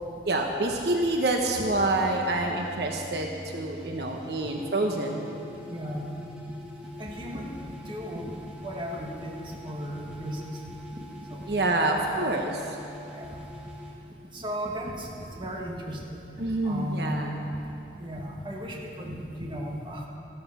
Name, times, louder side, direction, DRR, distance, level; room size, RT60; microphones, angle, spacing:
voice 1, 0.3-5.3 11.5-12.8 16.4-17.4, right 2 dB, 60° right, 2 dB, 1.1 m, -27 dB
sound 1, 1.4-13.9, left 1 dB, 5° right, 1.6 m, -44 dB
voice 2, 5.7-6.1 7.0-8.3 8.6-11.4 13.1-13.5 14.3-16.2 16.6-17.3 18.0-20.1, equal, 25° right, -1 dB, 1.6 m, -36 dB
14.0 x 13.5 x 6.2 m, 2.8 s
head